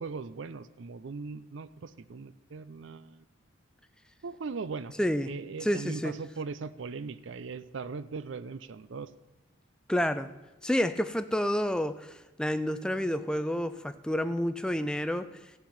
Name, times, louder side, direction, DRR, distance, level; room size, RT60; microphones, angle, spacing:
voice 1, 0.0-3.2 4.2-4.9 5.3-9.1, right 4 dB, 65° right, 16 dB, 0.5 m, -39 dB
voice 2, 5.0-5.3 5.6-6.1 9.9-10.3 10.6-15.3, equal, 5° left, 10 dB, 0.4 m, -29 dB
14.5 x 5.7 x 7.2 m, 1.1 s
head